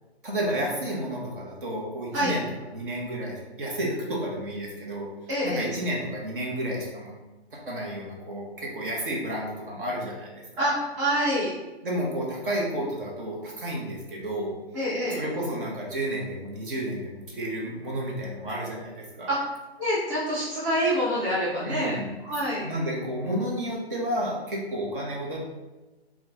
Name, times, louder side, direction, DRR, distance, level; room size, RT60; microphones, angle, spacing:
voice 1, 0.2-5.1 5.4-7.1 7.5-10.7 11.8-14.5 15.1-19.3 21.6-22.1 22.5-25.4, right 1 dB, 50° right, -3 dB, 1.3 m, -31 dB
voice 2, 5.3-5.7 10.6-11.5 14.7-15.2 19.3-19.4 19.8-22.0 22.2-22.6, equal, 25° right, -8 dB, 0.8 m, -26 dB
5.6 x 2.5 x 2.7 m, 1.1 s
hypercardioid pair, 160°, 33 cm